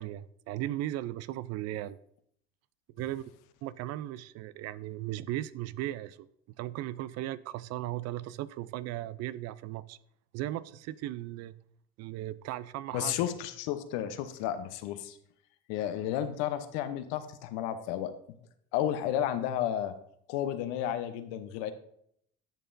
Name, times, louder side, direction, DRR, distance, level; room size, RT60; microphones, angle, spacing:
voice 1, 0.0-2.0 3.0-3.2 3.6-6.3 6.6-10.0 10.3-11.6 12.0-13.2, right 14 dB, 55° right, 0.5 m, -37 dB
voice 2, 12.9-15.2 15.7-18.1 18.7-19.9 20.3-21.7, left 11 dB, 70° left, 0.9 m, -32 dB
10.5 x 6.8 x 2.6 m
hypercardioid pair, 80°, 31 cm